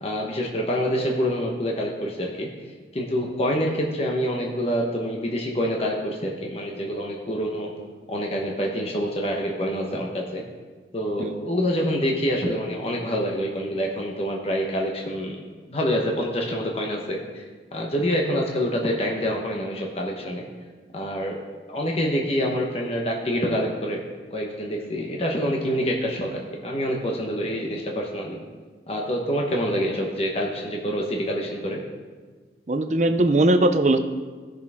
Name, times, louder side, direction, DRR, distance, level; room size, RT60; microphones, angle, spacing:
voice 1, 0.0-2.5 2.9-7.7 8.1-10.4 10.9-17.4 17.7-20.5 20.9-21.4 21.7-24.0 24.3-28.4 28.9-31.8, equal, 35° left, 0 dB, 1.1 m, -26 dB
voice 2, 32.7-34.0, right 2 dB, 40° right, 8 dB, 0.6 m, -19 dB
16.5 x 6.4 x 3.6 m, 1.5 s
head